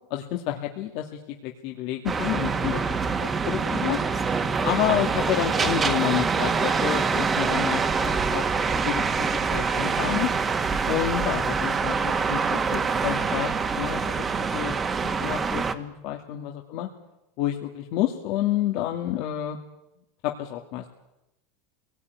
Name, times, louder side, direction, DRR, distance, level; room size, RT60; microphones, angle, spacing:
voice 1, 0.1-2.8 3.2-4.0 4.6-8.4 8.8-10.3 10.8-14.0 14.4-14.8 15.0-16.9 17.4-19.6 20.2-20.8, left 12 dB, 60° left, 2 dB, 2.2 m, -29 dB
sound 1, 2.1-15.7, right 5 dB, 25° right, 1.8 m, -25 dB
24.0 x 18.5 x 9.5 m, 0.95 s
supercardioid pair, 115°, 0 cm